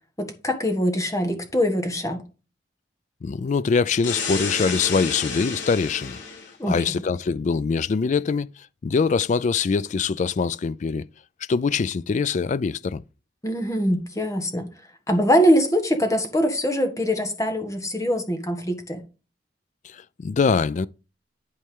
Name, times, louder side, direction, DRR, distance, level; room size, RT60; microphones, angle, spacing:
voice 1, 0.2-2.2 6.6-6.8 13.4-14.7 15.1-19.0, equal, 15° left, 1.3 m, -23 dB
voice 2, 3.2-6.2 6.6-11.0 11.5-13.0 19.8-20.9, left 5 dB, 40° left, 0.3 m, -23 dB
sound 1, 4.0-6.5, left 5 dB, 85° left, 4.3 m, -30 dB
11.0 x 4.4 x 3.6 m
head